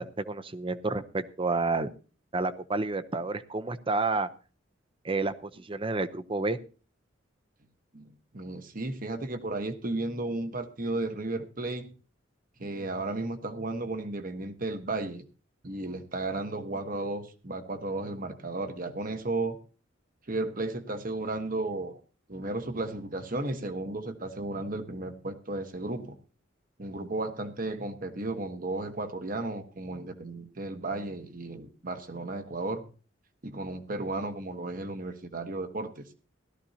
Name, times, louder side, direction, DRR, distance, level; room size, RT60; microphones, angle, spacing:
voice 1, 0.0-1.9 2.3-4.3 5.0-6.6, right 3 dB, 30° right, 12 dB, 0.7 m, -30 dB
voice 2, 7.9-11.9 12.6-15.2 15.6-19.6 20.3-22.0 22.3-26.2 26.8-32.9 33.4-36.1, right 2 dB, 45° right, 8 dB, 1.3 m, -34 dB
17.0 x 13.0 x 2.9 m, 0.37 s
head